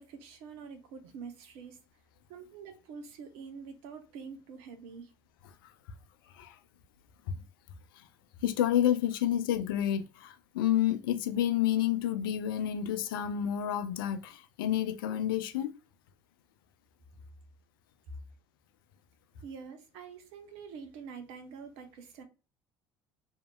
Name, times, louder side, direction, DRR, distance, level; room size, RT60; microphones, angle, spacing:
voice 1, 0.0-1.8 2.3-5.1 19.4-22.2, right 6 dB, 65° right, 0.7 m, -46 dB
voice 2, 8.4-15.7, left 11 dB, 80° left, 0.4 m, -29 dB
2.8 x 2.7 x 2.2 m
hypercardioid pair, 65°, 11 cm